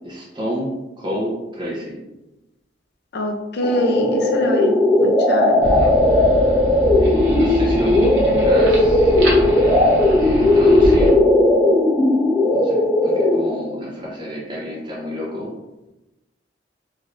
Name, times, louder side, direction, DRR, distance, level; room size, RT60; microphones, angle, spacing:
voice 1, 0.0-2.0 7.0-8.1 8.4-9.2 10.1-11.2 12.5-15.5, equal, 25° right, -5 dB, 0.8 m, -29 dB
voice 2, 3.1-4.7 5.0-5.5 7.8-8.4, left 1 dB, 60° left, 2 dB, 0.6 m, -24 dB
sound 1, 3.6-13.6, left 1 dB, 5° left, 0.8 m, -16 dB
sound 2, 5.6-11.1, equal, 70° right, 0.9 m, -25 dB
3.3 x 2.6 x 2.5 m, 1.0 s
head